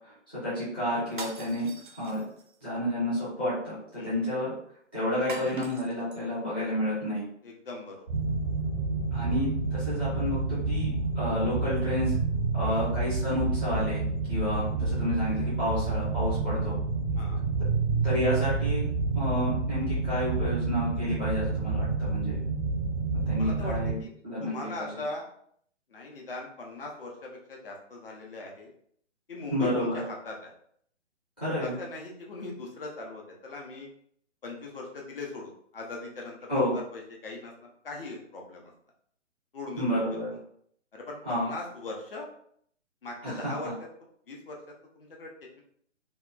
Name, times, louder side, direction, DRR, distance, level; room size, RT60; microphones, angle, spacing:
voice 1, 0.3-1.7 2.0-2.2 2.6-4.5 4.9-7.2 9.1-10.9 11.1-12.1 12.5-14.0 14.3-16.8 18.0-18.8 19.1-22.4 23.3-24.9 29.5-30.0 31.4-31.8 36.5-36.8 39.8-40.3 41.2-41.5 43.2-43.7, left 1 dB, 10° left, -12 dB, 0.5 m, -30 dB
sound 1, 1.1-2.6 5.3-6.2, right 2 dB, 45° right, 0.4 m, -42 dB
voice 2, 7.4-8.1 12.6-12.9 17.2-17.4 23.4-24.1 24.4-25.3 25.9-28.7 29.3-30.5 31.6-33.9 34.4-37.5 37.8-38.6 39.5-40.2 40.9-42.3 43.0-43.7 44.3-44.6 45.0-45.3, left 2 dB, 50° left, 0 dB, 0.7 m, -40 dB
sound 2, 8.1-23.9, right 3 dB, 80° right, 0.8 m, -29 dB
2.8 x 2.1 x 2.3 m, 0.64 s
figure-of-eight pair, 135°, 36 cm